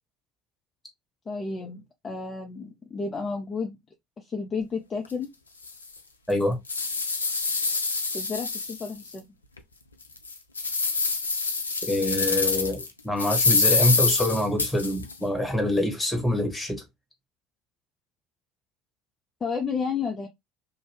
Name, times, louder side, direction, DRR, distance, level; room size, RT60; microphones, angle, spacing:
voice 1, 1.3-3.8 4.2-5.3 8.1-9.2 19.4-20.3, left 5 dB, 30° left, 0.6 m, -31 dB
sound 1, 5.1-5.2 5.7-5.8 6.3-9.1 9.6-9.7 10.2-12.9 13.2-15.1, left 4 dB, 90° left, 0.3 m, -26 dB
voice 2, 6.3-6.6 11.9-16.8, left 1 dB, 10° left, 1.2 m, -25 dB
2.6 x 2.3 x 3.2 m
figure-of-eight pair, 65°, 0 cm